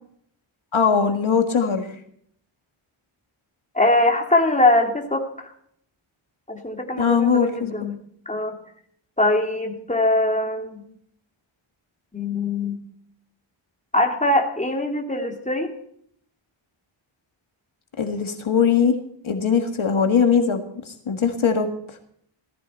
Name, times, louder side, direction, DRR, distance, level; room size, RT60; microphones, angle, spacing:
voice 1, 0.7-1.9 7.0-7.7 18.0-18.9 19.2-21.7, left 6 dB, 70° left, 6 dB, 1.7 m, -20 dB
voice 2, 3.7-5.5 6.5-8.0 8.3-8.6 9.2-10.8 12.1-12.8 13.9-15.7, left 2 dB, 15° left, 2 dB, 2.6 m, -22 dB
17.5 x 15.0 x 4.3 m, 0.66 s
wide cardioid pair, 105°, 49 cm